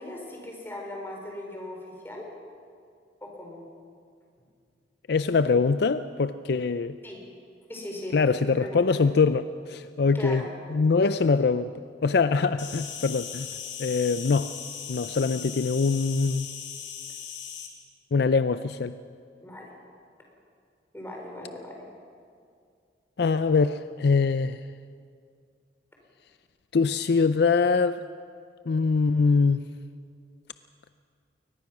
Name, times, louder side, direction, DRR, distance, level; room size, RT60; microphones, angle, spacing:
voice 1, 0.0-2.3 3.2-3.6 7.0-7.2 7.7-8.9 10.1-10.5 19.4-19.7 20.9-21.8, left 1 dB, 15° left, 0 dB, 4.1 m, -39 dB
voice 2, 5.1-7.0 8.1-10.4 10.7-13.5 13.8-14.5 14.9-16.5 18.1-19.0 23.2-24.6 26.7-28.0 28.7-29.6, left 4 dB, 60° left, 12 dB, 0.5 m, -23 dB
Insect, 12.6-17.7, left 8 dB, 80° left, 2.8 m, -38 dB
22.5 x 19.5 x 6.1 m, 2.2 s
head